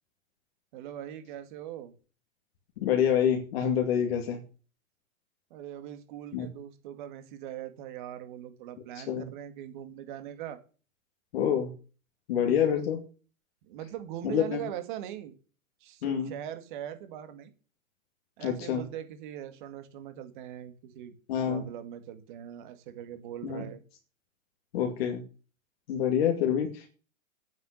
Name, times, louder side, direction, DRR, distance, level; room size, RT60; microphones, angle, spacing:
voice 1, 0.7-1.9 5.5-10.6 12.4-12.8 13.6-15.3 15.8-17.5 18.4-21.1 21.4-23.8, right 11 dB, 35° right, 10 dB, 2.1 m, -41 dB
voice 2, 2.8-4.4 6.3-6.5 9.0-9.3 11.3-11.7 12.3-13.0 14.2-14.6 16.0-16.3 18.4-18.8 21.3-21.6 23.4-23.6 24.7-25.2 25.9-26.9, left 8 dB, 45° left, 3 dB, 2.4 m, -27 dB
9.5 x 9.4 x 8.1 m, 0.38 s
hypercardioid pair, 165°, 41 cm